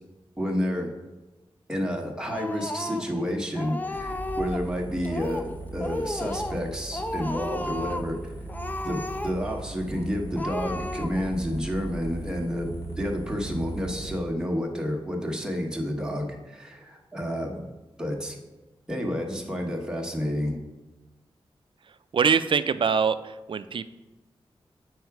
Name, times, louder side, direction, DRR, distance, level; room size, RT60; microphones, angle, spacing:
voice 1, 0.4-0.9 1.7-8.3 8.8-9.0 9.2-12.7 13.0-17.6 18.0-18.4 18.9-20.6, equal, 5° right, 0 dB, 1.1 m, -30 dB
Speech, 2.3-3.2 3.6-4.7 5.0-5.5 5.8-6.7 6.9-8.1 8.5-9.6 9.9-10.0 10.4-11.4, left 1 dB, 20° left, 0.4 m, -34 dB
sound 1, 3.9-14.2, right 2 dB, 45° left, 1.3 m, -38 dB
voice 2, 22.1-23.8, right 6 dB, 60° right, 13 dB, 0.4 m, -23 dB
7.9 x 4.7 x 4.7 m, 1.1 s
wide cardioid pair, 125°, 10 cm